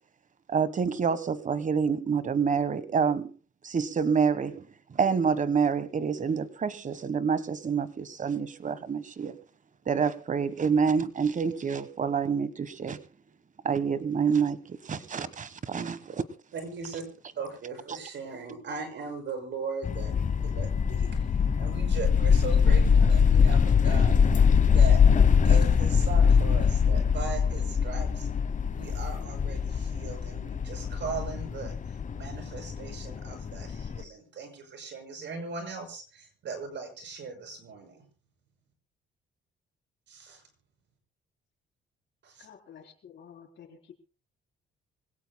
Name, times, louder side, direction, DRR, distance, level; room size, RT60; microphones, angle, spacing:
voice 1, 0.5-3.3 3.6-9.3 9.9-13.0 13.6-16.2 17.9-18.0, right 6 dB, 40° right, 1.3 m, -27 dB
voice 2, 16.5-17.0 17.4-21.1 21.6-24.3 24.7-25.0 25.4-28.3 28.7-38.0 40.1-40.4 42.2-42.5, right 4 dB, 65° right, 6.3 m, -39 dB
sound 1, 19.8-34.0, left 6 dB, 40° left, 1.0 m, -23 dB
voice 3, 42.4-43.9, left 8 dB, 65° left, 4.1 m, -50 dB
25.0 x 17.5 x 2.2 m
cardioid pair, 90°, 20 cm